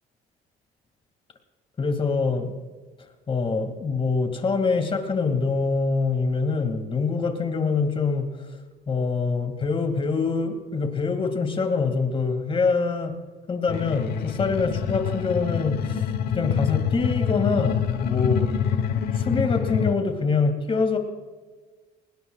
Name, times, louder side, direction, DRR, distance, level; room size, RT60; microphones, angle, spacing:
voice 1, 1.8-2.5 3.3-8.3 8.9-13.2 13.5-18.5 19.1-21.0, left 4 dB, 30° left, 6 dB, 2.2 m, -25 dB
sound 1, 13.7-19.9, left 7 dB, 65° left, 1.1 m, -26 dB
24.0 x 19.5 x 2.4 m, 1.4 s
cardioid pair, 110°, 17 cm